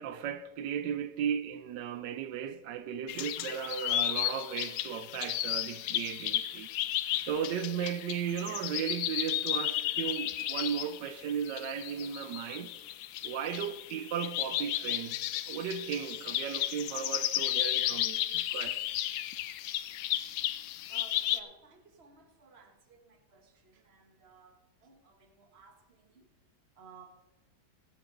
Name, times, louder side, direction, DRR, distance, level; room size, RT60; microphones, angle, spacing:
voice 1, 0.0-6.7 7.2-12.7 13.2-18.8, right 8 dB, 85° right, 1.3 m, -36 dB
sound 1, 3.1-21.4, left 13 dB, 75° left, 1.0 m, -33 dB
voice 2, 20.9-26.3 26.7-27.2, right 5 dB, 40° right, 1.4 m, -57 dB
20.5 x 7.5 x 3.9 m
omnidirectional pair, 1.9 m